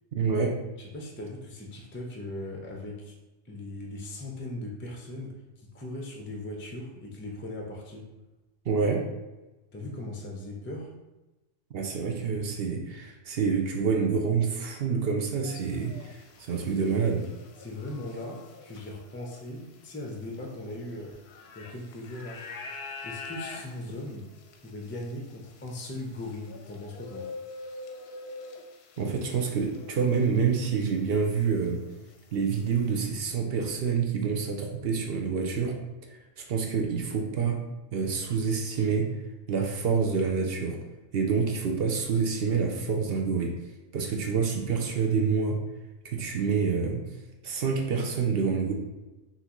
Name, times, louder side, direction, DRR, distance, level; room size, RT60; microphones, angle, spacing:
voice 1, 0.1-0.6 8.7-9.0 11.7-16.1 16.4-17.3 29.0-31.8 32.3-35.8 36.4-37.6 37.9-39.1 39.5-40.8 41.1-43.5 43.9-45.6 46.0-47.0 47.4-48.7, right 5 dB, 60° right, 2 dB, 0.8 m, -27 dB
voice 2, 0.8-3.2 3.4-8.1 9.7-10.9 17.6-21.2 21.6-22.5 23.0-24.3 24.6-27.3, left 1 dB, 20° left, -1 dB, 0.3 m, -39 dB
sound 1, 15.4-30.7 31.0-33.0, left 4 dB, 65° left, 0.7 m, -46 dB
5.8 x 2.8 x 3.0 m, 1.1 s
omnidirectional pair, 1.3 m